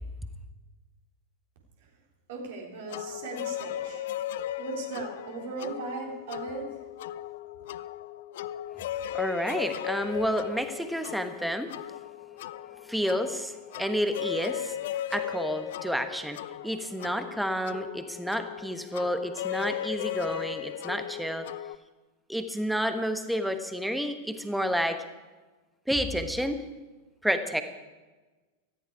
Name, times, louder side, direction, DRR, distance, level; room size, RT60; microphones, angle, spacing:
voice 1, 2.3-4.0 4.6-6.7, right 4 dB, 55° right, 0 dB, 3.6 m, -38 dB
sound 1, 2.9-21.7, left 11 dB, 55° left, 0.5 m, -37 dB
voice 2, 9.1-11.7 12.9-14.8 15.1-21.5 22.3-25.0 25.9-26.6 27.2-27.6, equal, ahead, 9 dB, 1.3 m, -30 dB
18.0 x 14.0 x 4.9 m, 1.2 s
figure-of-eight pair, 90°, 0 cm